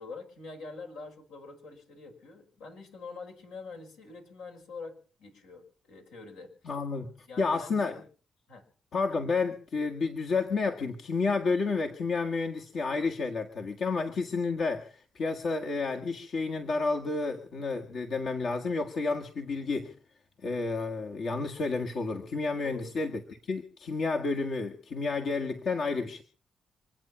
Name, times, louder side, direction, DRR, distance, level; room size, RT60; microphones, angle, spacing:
voice 1, 0.0-6.5 7.3-8.0 8.5-8.6 22.6-22.9, left 3 dB, 90° left, 1 dB, 5.4 m, -45 dB
voice 2, 6.6-7.1 7.4-7.9 8.9-19.9 20.4-26.2, left 4 dB, 65° left, 1 dB, 1.7 m, -30 dB
26.0 x 9.0 x 5.7 m, 0.41 s
supercardioid pair, 55°, 0 cm